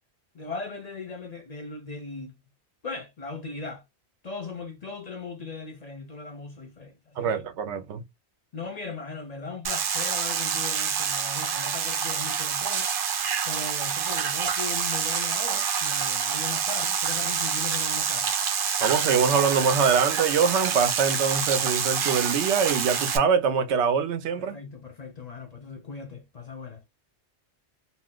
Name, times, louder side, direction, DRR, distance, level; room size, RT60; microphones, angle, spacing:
voice 1, 0.3-2.4 2.8-3.8 4.2-7.3 8.5-12.9 13.4-18.3 24.4-26.8, left 4 dB, 50° left, 0.5 m, -38 dB
voice 2, 7.2-8.0 18.8-24.6, right 6 dB, 90° right, 0.9 m, -24 dB
sound 1, 9.6-23.2, right 7 dB, 60° right, 0.7 m, -27 dB
2.6 x 2.1 x 3.6 m
omnidirectional pair, 1.2 m